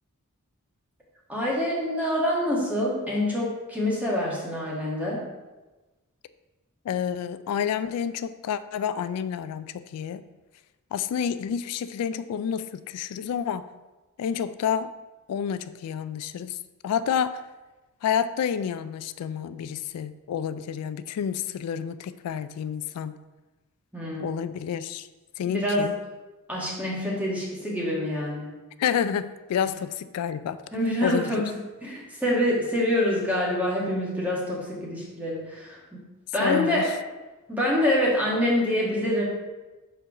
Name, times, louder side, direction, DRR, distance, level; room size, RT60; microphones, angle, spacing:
voice 1, 1.3-5.2 23.9-24.3 25.5-25.9 26.5-28.5 29.6-29.7 30.7-31.5 31.8-35.8 36.3-36.8 37.5-39.2, left 1 dB, 5° right, -5 dB, 1.6 m, -26 dB
voice 2, 6.9-10.2 10.9-13.6 14.2-14.9 15.3-16.6 16.8-17.4 18.0-23.1 24.2-25.1 25.4-26.0 28.8-30.6 31.0-31.3 36.4-36.9, left 8 dB, 90° left, 16 dB, 0.3 m, -29 dB
4.6 x 4.5 x 6.0 m, 1.1 s
head